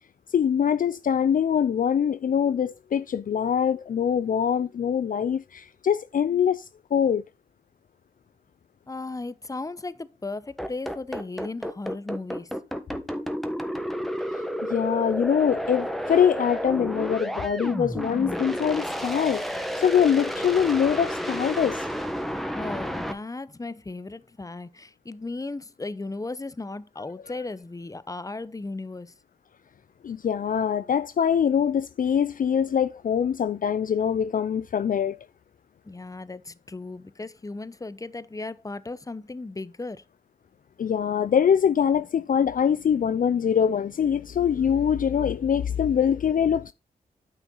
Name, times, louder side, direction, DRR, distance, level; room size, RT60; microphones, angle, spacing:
voice 1, 0.3-6.7 6.9-7.2 14.7-21.9 30.0-35.2 40.8-46.7, left 8 dB, 55° left, 0.4 m, -23 dB
voice 2, 8.9-12.5 22.6-29.1 35.8-40.0, left 3 dB, 20° left, 0.7 m, -36 dB
sound 1, 10.6-23.1, equal, ahead, 1.3 m, -31 dB
9.3 x 5.7 x 3.9 m
cardioid pair, 45°, 16 cm